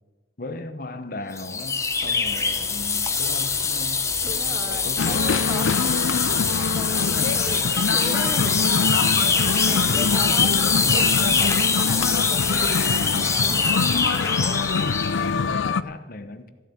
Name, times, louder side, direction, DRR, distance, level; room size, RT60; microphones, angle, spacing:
voice 1, 0.4-5.7 9.0-10.3 15.2-16.5, left 2 dB, 45° left, 10 dB, 1.0 m, -37 dB
sound 1, 1.4-15.2, left 5 dB, 15° left, 0.8 m, -23 dB
voice 2, 4.2-5.7 6.6-8.7 9.7-13.7, right 1 dB, 10° right, 7 dB, 0.9 m, -37 dB
sound 2, 5.0-15.8, left 5 dB, 75° left, 0.5 m, -25 dB
15.0 x 7.1 x 9.5 m, 1.2 s
head